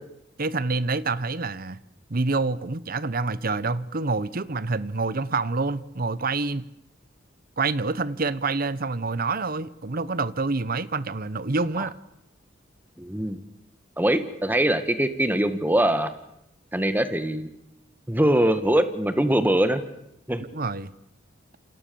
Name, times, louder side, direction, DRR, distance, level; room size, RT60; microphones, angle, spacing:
voice 1, 0.4-1.8 2.1-6.6 7.6-11.9 20.5-20.9, right 3 dB, 50° right, 17 dB, 1.0 m, -27 dB
voice 2, 13.0-13.4 14.0-16.1 16.7-17.5 18.1-19.8 20.3-20.4, right 1 dB, 10° right, 10 dB, 1.7 m, -22 dB
28.0 x 27.5 x 7.1 m, 0.82 s
head